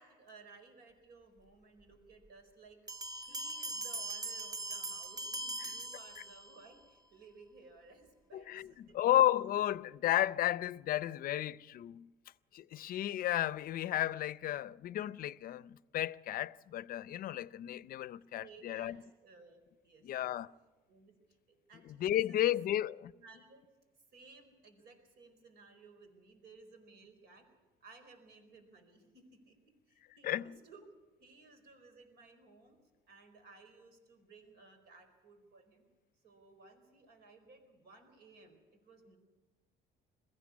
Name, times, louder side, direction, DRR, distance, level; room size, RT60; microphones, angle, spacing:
voice 1, 0.0-9.0 18.0-20.3 20.9-21.1 21.5-22.4 22.7-22.8 23.1-23.6 24.1-27.5 27.8-30.8 31.2-32.8 33.0-35.8 36.2-39.2, right 4 dB, 75° right, 4.6 m, -59 dB
Bell, 2.9-6.7, right 2 dB, 20° right, 1.0 m, -41 dB
voice 2, 8.3-12.1 12.5-19.0 20.0-20.5 21.9-23.1 30.2-30.5, left 13 dB, 60° left, 0.5 m, -33 dB
21.5 x 15.0 x 8.5 m
cardioid pair, 110°, 17 cm